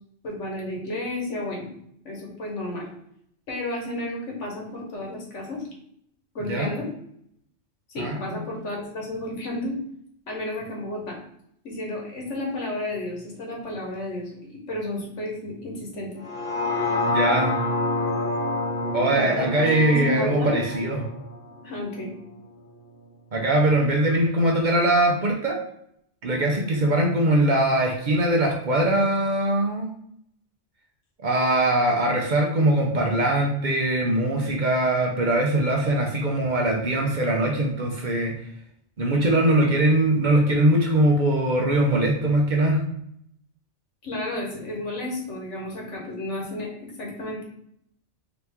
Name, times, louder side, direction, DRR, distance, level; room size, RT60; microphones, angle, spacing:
voice 1, 0.2-1.7 2.0-2.9 3.5-5.6 6.3-6.9 7.9-9.7 10.3-11.2 11.6-16.2 19.1-20.6 21.6-22.1 44.0-47.4, left 1 dB, 90° left, -2 dB, 1.6 m, -32 dB
voice 2, 8.0-8.4 17.0-17.6 18.9-21.1 23.3-25.6 26.2-29.9 31.2-38.3 39.0-42.8, right 1 dB, 45° right, 0 dB, 0.8 m, -21 dB
sound 1, 16.2-22.4 22.8-22.9, left 2 dB, 55° left, 0.9 m, -28 dB
4.0 x 2.9 x 3.5 m, 0.70 s
omnidirectional pair, 1.2 m